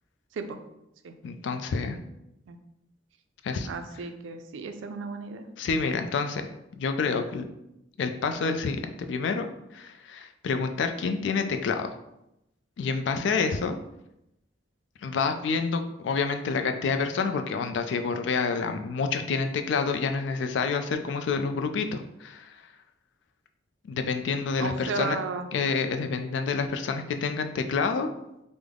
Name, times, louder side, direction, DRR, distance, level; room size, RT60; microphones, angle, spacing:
voice 1, 1.2-2.0 3.4-3.7 5.6-6.4 6.8-7.5 8.0-12.0 12.8-13.7 15.0-22.6 23.8-25.2 25.5-28.1, left 5 dB, 70° left, 7 dB, 0.3 m, -28 dB
voice 2, 3.7-5.5 13.1-13.3 24.6-25.5, right 4 dB, 85° right, 8 dB, 0.3 m, -34 dB
3.5 x 2.0 x 3.4 m, 0.86 s
head